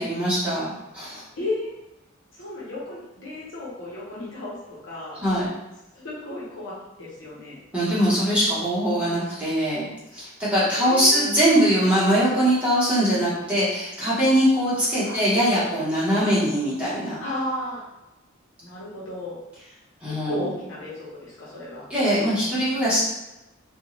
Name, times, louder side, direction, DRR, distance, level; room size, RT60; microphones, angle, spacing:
voice 1, 0.0-1.2 5.2-5.5 7.7-9.9 10.1-17.2 20.0-20.4 21.9-23.0, equal, 5° right, -11 dB, 1.1 m, -22 dB
voice 2, 1.4-1.7 2.3-5.2 5.9-7.6 10.8-11.4 15.0-15.2 17.2-17.8 18.6-19.4 20.3-21.9, left 1 dB, 70° left, -7 dB, 1.0 m, -34 dB
2.5 x 2.4 x 3.1 m, 0.97 s
head